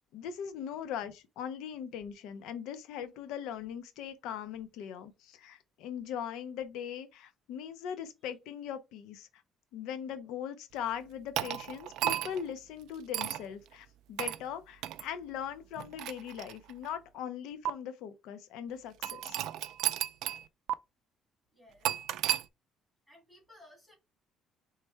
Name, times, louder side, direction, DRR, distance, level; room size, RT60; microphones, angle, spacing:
voice 1, 0.1-9.4 9.7-19.4, left 8 dB, 80° left, 0.6 m, -40 dB
sound 1, 11.4-12.5 13.1-13.4 14.2-14.4 14.8-15.0 15.8-16.9 17.7-17.8 19.0-20.4 20.7-20.8 21.8-22.4, right 12 dB, 65° right, 0.3 m, -33 dB
voice 2, 21.5-22.0 23.1-24.0, left 1 dB, 5° left, 2.9 m, -58 dB
4.4 x 3.2 x 3.3 m
cardioid pair, 170°, 0 cm